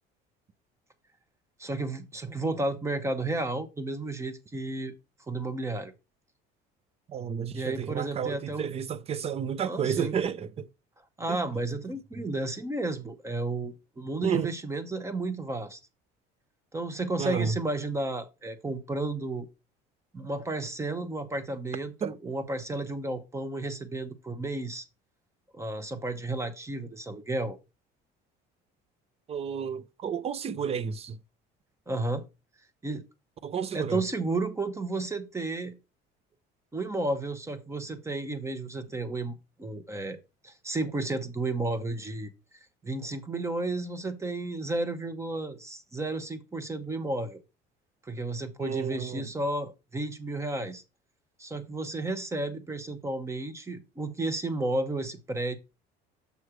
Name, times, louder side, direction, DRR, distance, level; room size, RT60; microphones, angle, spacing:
voice 1, 1.6-4.9 5.3-5.9 7.5-8.7 9.6-10.2 11.2-15.8 16.7-19.5 20.1-24.8 25.5-27.6 31.9-32.2 32.8-33.1 33.7-35.8 36.7-40.2 40.4-42.3 42.8-47.4 48.0-50.8 51.4-55.6, right 2 dB, 15° right, 1.0 m, -32 dB
voice 2, 7.1-10.7 11.3-11.4 14.2-14.5 17.2-17.6 22.0-22.1 29.3-31.2 33.4-34.0 48.6-49.3, right 7 dB, 30° right, 0.5 m, -31 dB
6.9 x 3.2 x 6.0 m
cardioid pair, 130°, 20 cm